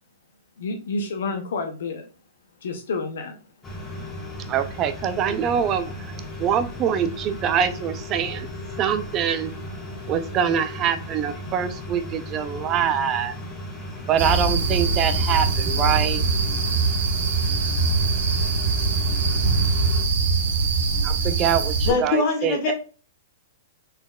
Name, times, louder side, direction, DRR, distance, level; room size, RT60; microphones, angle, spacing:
voice 1, 0.6-2.0 2.6-3.3, left 3 dB, 70° left, 0.6 m, -29 dB
sound 1, 3.6-20.0, left 1 dB, 15° left, 1.3 m, -36 dB
voice 2, 4.5-5.9 6.4-8.5 8.8-9.5 10.1-13.3 14.1-16.2 21.0-21.6 22.0-22.7, right 8 dB, 30° right, 0.4 m, -24 dB
Underground world, 14.2-21.9, right 4 dB, 60° right, 1.1 m, -22 dB
voice 3, 21.9-22.7, left 3 dB, 45° left, 1.6 m, -22 dB
4.0 x 4.0 x 2.2 m
hypercardioid pair, 115°, 0 cm